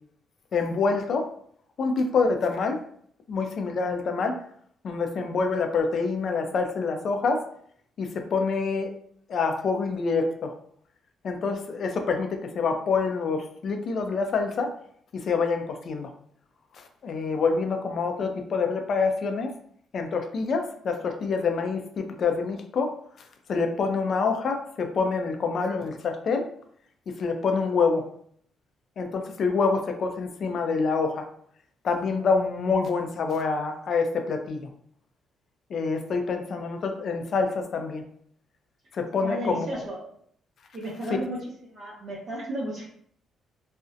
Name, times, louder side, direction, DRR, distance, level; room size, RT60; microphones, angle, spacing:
voice 1, 0.5-1.3 1.8-2.8 3.3-4.4 4.8-7.4 8.0-8.9 9.3-10.5 11.2-14.7 15.1-16.1 16.7-19.5 19.9-22.9 23.5-26.5 27.1-28.1 29.0-31.3 31.8-34.7 35.7-38.0 38.9-39.7, left 4 dB, 55° left, 5 dB, 0.4 m, -26 dB
voice 2, 39.2-40.0 40.7-41.4 41.7-42.9, right 1 dB, 55° right, -5 dB, 0.6 m, -33 dB
2.5 x 2.0 x 2.4 m, 0.63 s
cardioid pair, 90°, 0 cm